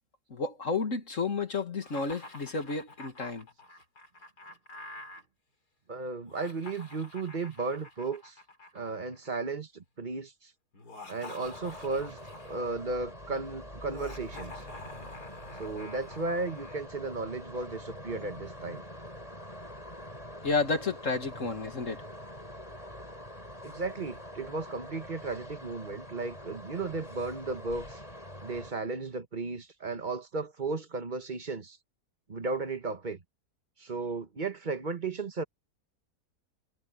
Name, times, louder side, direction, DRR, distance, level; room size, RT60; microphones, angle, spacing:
voice 1, 0.3-3.5 20.4-22.0, left 4 dB, 55° left, 2.2 m, -31 dB
Laughter, 1.8-5.2 6.2-9.5 10.7-12.8 13.9-16.8, left 2 dB, 80° left, 5.2 m, -48 dB
voice 2, 5.9-8.4 8.7-10.5 11.1-12.2 12.5-14.7 15.6-18.8 23.6-28.0 28.4-31.8 32.3-33.2 33.8-35.4, right 3 dB, 30° right, 1.4 m, -35 dB
sound 1, 11.4-28.7, equal, 20° left, 8.3 m, -45 dB
omnidirectional pair, 1.7 m